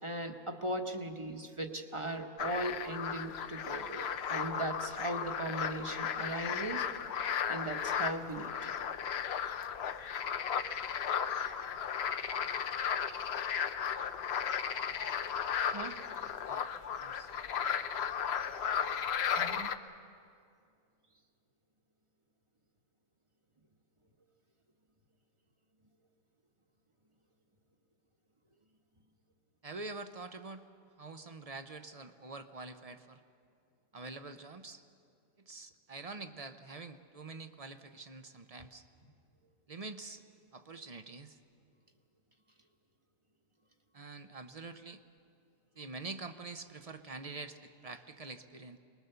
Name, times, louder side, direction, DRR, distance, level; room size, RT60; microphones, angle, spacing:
voice 1, 0.0-6.9 7.5-8.7 10.0-10.2 12.8-12.9 15.7-16.3 19.4-19.7, right 1 dB, 25° right, 4 dB, 1.1 m, -38 dB
sound 1, 2.4-19.8, left 7 dB, 55° left, 0.8 m, -35 dB
voice 2, 17.0-17.3 29.6-30.6 31.0-33.2 33.9-34.8 35.4-38.8 39.7-40.2 40.5-41.4 43.9-45.0 45.8-48.8, right 3 dB, 40° right, 9 dB, 0.5 m, -46 dB
24.0 x 20.5 x 6.8 m, 2.4 s
omnidirectional pair, 1.5 m